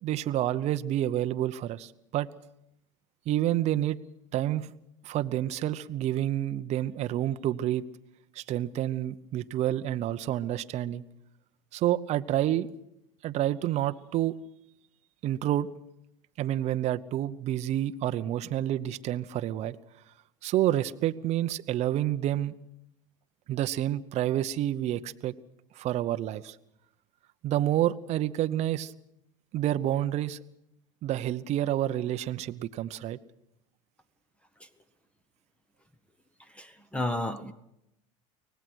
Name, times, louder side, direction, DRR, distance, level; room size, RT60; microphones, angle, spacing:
voice 1, 0.0-2.3 3.3-4.0 4.3-4.7 5.0-7.8 8.3-11.0 11.7-12.7 13.2-14.4 15.2-15.7 16.4-19.8 20.4-22.5 23.5-25.3 25.7-26.6 27.4-28.9 29.5-30.4 31.0-33.2, right 12 dB, 45° right, 11 dB, 0.8 m, -29 dB
voice 2, 36.5-37.5, left 1 dB, 5° left, 12 dB, 1.1 m, -32 dB
24.5 x 18.5 x 6.3 m, 0.83 s
hypercardioid pair, 105°, 16 cm